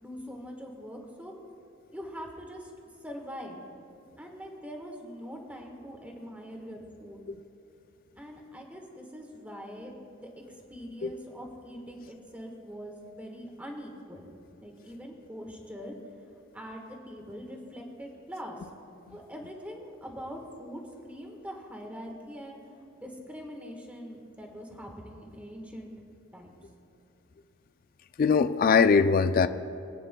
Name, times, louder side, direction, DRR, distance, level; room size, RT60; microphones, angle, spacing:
voice 1, 0.0-1.3 1.9-2.7 3.0-3.6 4.2-7.2 8.2-10.3 10.7-14.3 14.6-16.0 16.5-18.6 19.1-22.6 23.0-25.9 26.3-26.5, equal, 5° right, 1 dB, 1.3 m, -43 dB
voice 2, 28.2-29.5, left 5 dB, 45° left, 11 dB, 0.3 m, -21 dB
23.0 x 8.9 x 2.2 m, 2.8 s
head